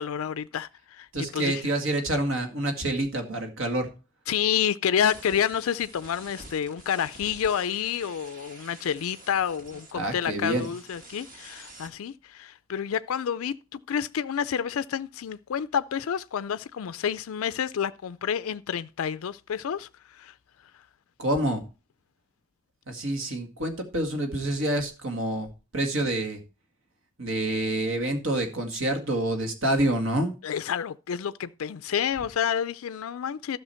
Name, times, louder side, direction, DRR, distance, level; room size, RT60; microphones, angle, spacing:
voice 1, 0.0-1.6 4.3-20.3 30.4-33.6, left 8 dB, 75° left, 0.4 m, -29 dB
voice 2, 1.1-3.9 9.9-10.7 21.2-21.6 22.9-26.4 27.2-30.3, right 1 dB, 65° right, 2.0 m, -27 dB
sound 1, 5.0-11.9, right 2 dB, 40° right, 2.0 m, -48 dB
12.5 x 6.3 x 4.4 m
head